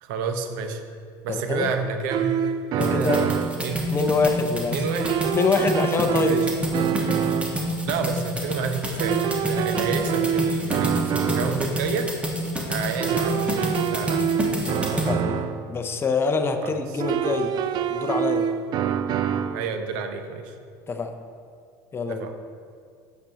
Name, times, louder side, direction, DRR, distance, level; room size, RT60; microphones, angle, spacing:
voice 1, 0.0-0.8 1.2-2.4 2.7-3.8 4.7-5.2 6.2-6.5 7.8-12.1 12.7-14.3 16.6-17.0 19.5-20.6 22.1-22.3, right 5 dB, 75° right, 6 dB, 0.7 m, -30 dB
voice 2, 1.3-1.7 2.8-3.2 3.9-4.8 5.3-6.4 14.7-17.6 17.9-18.5 20.9-21.2 21.9-22.3, left 4 dB, 20° left, 6 dB, 0.6 m, -25 dB
sound 1, 2.1-3.7 5.0-7.6 9.0-11.7 13.0-15.7 17.0-19.7, right 8 dB, 45° right, 0.3 m, -26 dB
sound 2, 2.8-15.1, equal, 10° right, 1.2 m, -28 dB
8.6 x 6.9 x 2.9 m, 2.2 s
supercardioid pair, 105°, 10 cm